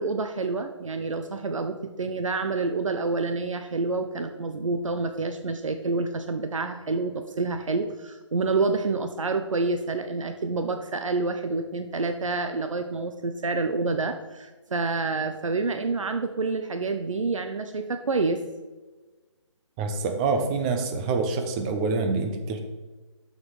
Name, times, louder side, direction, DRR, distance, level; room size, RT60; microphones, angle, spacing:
voice 1, 0.0-18.4, right 3 dB, 90° right, 7 dB, 0.7 m, -28 dB
voice 2, 19.8-22.6, right 4 dB, 10° right, 5 dB, 0.4 m, -26 dB
6.7 x 6.3 x 4.7 m, 1.3 s
hypercardioid pair, 160°, 16 cm